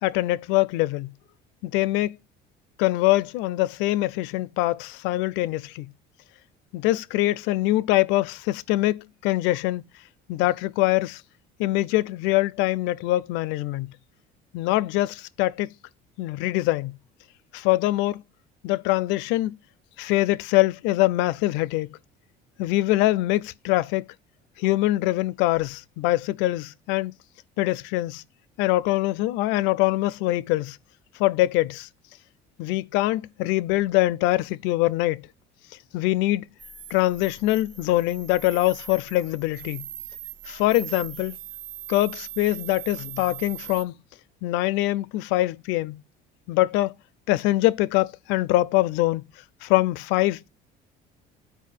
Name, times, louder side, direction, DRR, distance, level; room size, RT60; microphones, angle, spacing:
voice 1, 0.0-1.1 1.6-2.1 2.8-5.9 6.7-9.8 10.3-11.2 11.6-13.9 14.5-15.7 16.2-16.9 17.5-18.2 18.6-19.6 20.0-22.0 22.6-24.0 24.6-27.1 27.6-28.2 28.6-30.8 31.2-31.9 32.6-35.3 35.9-36.4 36.9-39.8 40.5-41.3 41.9-43.9 44.4-46.0 46.5-46.9 47.3-49.3 49.6-50.5, left 17 dB, 90° left, 0.5 m, -23 dB
sound 1, 36.6-43.8, right 10 dB, 75° right, 1.3 m, -40 dB
7.5 x 4.8 x 6.7 m
cardioid pair, 145°, 19 cm